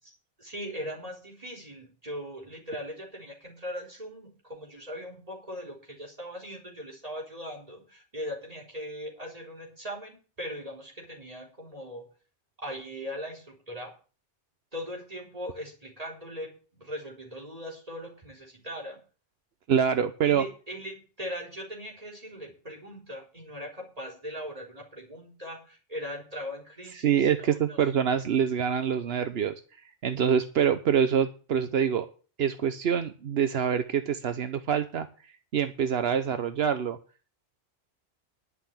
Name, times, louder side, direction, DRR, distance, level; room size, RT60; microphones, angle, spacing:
voice 1, 0.0-12.0 12.6-13.9 14.7-19.0 20.2-27.8, equal, 35° right, 0 dB, 3.9 m, -40 dB
voice 2, 19.7-20.4 27.0-29.6 30.0-32.1 32.4-35.1 35.5-37.0, right 8 dB, 80° right, 10 dB, 1.1 m, -25 dB
11.0 x 5.9 x 8.5 m, 0.38 s
omnidirectional pair, 1.0 m